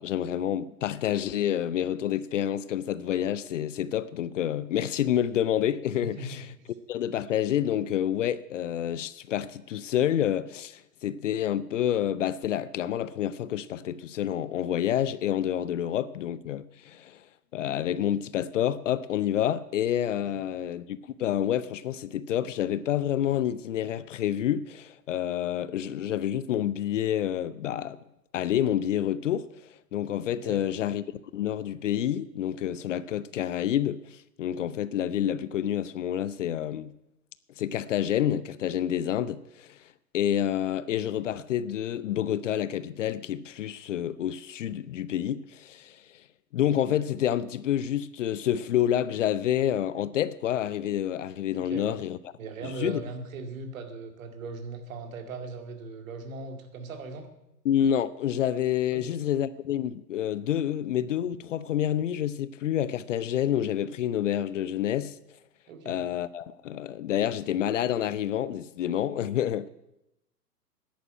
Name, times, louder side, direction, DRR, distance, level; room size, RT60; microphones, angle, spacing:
voice 1, 0.0-6.4 6.9-17.2 17.5-28.0 28.3-29.5 29.9-36.9 37.6-39.8 40.1-46.0 46.5-52.2 52.6-53.0 57.6-65.1 65.9-69.7, left 10 dB, 50° left, 0.6 m, -28 dB
voice 2, 6.0-6.4 20.3-20.4 30.3-30.6 51.5-52.0 52.4-57.3 58.9-59.2 65.7-66.0, right 3 dB, 55° right, 2.3 m, -39 dB
10.5 x 9.2 x 8.8 m
figure-of-eight pair, 115°, 49 cm